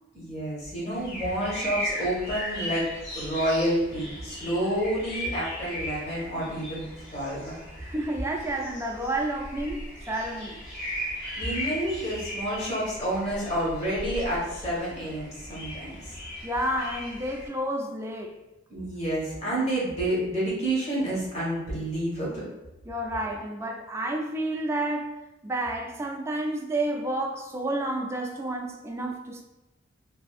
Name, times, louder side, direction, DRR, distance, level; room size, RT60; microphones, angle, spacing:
voice 1, 0.1-2.9 3.1-6.8 7.1-7.6 11.4-16.2 18.7-22.4, right 1 dB, 35° left, -6 dB, 1.2 m, -29 dB
sound 1, 0.9-17.5, equal, 60° left, 1.4 m, -37 dB
voice 2, 7.8-9.8 10.1-10.6 16.4-18.4 22.9-25.1 25.4-29.4, right 1 dB, 15° right, 1 dB, 0.3 m, -30 dB
3.3 x 2.6 x 2.4 m, 1.0 s
head